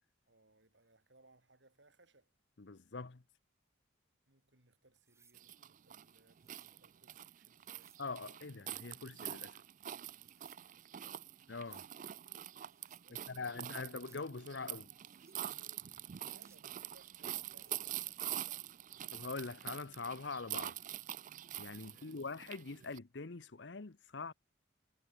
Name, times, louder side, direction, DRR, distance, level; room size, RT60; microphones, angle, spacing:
voice 1, 0.3-2.3 4.3-8.0 10.8-11.3 12.9-13.8 16.2-19.2 21.8-22.3, right 2 dB, 65° right, 4.4 m, -68 dB
voice 2, 2.6-3.2 8.0-9.6 11.5-11.8 13.3-14.9 19.1-20.7 21.6-24.3, left 4 dB, 65° left, 0.9 m, -43 dB
sound 1, 5.0-5.4 6.3-6.7 7.6-8.1 8.9-9.4 10.2-10.7 11.4-11.9 12.6-13.1 13.8-14.3 15.0-15.4 16.2-16.7 17.3-17.8 19.8-20.0, right 5 dB, 15° right, 3.2 m, -70 dB
sound 2, 5.3-23.0, right 12 dB, 40° right, 0.3 m, -45 dB
head